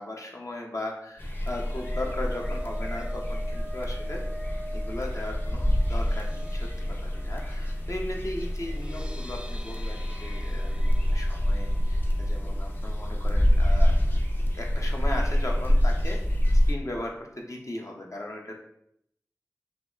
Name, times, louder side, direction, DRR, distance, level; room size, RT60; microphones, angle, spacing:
voice 1, 0.0-4.2 4.7-14.0 14.5-16.4 16.7-18.5, left 1 dB, 55° left, 0 dB, 1.0 m, -37 dB
sound 1, 1.2-16.7, equal, 30° left, 0.7 m, -26 dB
sound 2, 1.2-15.4 15.7-16.0 16.3-16.4, right 1 dB, 15° right, 0.3 m, -46 dB
5.5 x 2.1 x 3.9 m, 0.73 s
wide cardioid pair, 40°, 6 cm